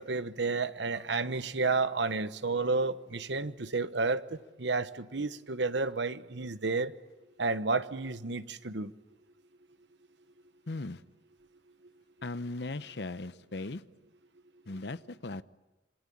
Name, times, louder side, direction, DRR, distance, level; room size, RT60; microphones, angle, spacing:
voice 1, 0.0-6.9 7.4-8.9, right 3 dB, 75° right, 1.1 m, -31 dB
voice 2, 10.7-11.0 12.2-13.8 14.7-15.4, left 2 dB, 65° left, 0.8 m, -38 dB
27.0 x 23.0 x 8.6 m
head